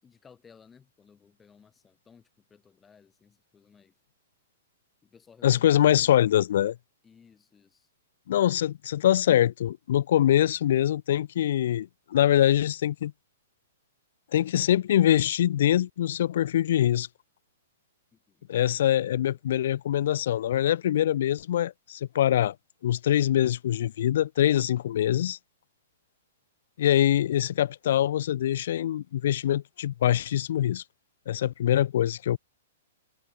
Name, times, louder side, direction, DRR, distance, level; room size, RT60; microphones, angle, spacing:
voice 1, 0.0-4.0 5.0-6.1 7.0-7.9 18.1-18.5 19.3-19.4, left 6 dB, 15° left, 6.4 m, -57 dB
voice 2, 5.4-6.8 8.3-13.1 14.3-17.1 18.5-22.5 22.8-25.4 26.8-30.8 31.3-32.4, left 11 dB, 60° left, 0.4 m, -24 dB
hypercardioid pair, 115°, 0 cm